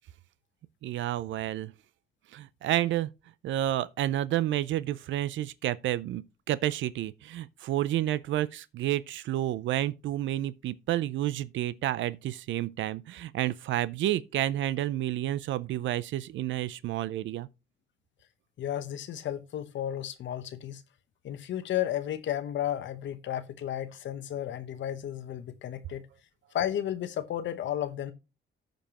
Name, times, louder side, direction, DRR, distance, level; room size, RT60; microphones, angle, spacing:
voice 1, 0.8-1.7 2.3-3.1 3.4-17.5, right 13 dB, 75° right, 0.5 m, -30 dB
voice 2, 18.6-20.8 21.2-26.0 26.5-28.1, left 11 dB, 70° left, 0.9 m, -33 dB
14.5 x 5.3 x 2.9 m
cardioid pair, 90°, 20 cm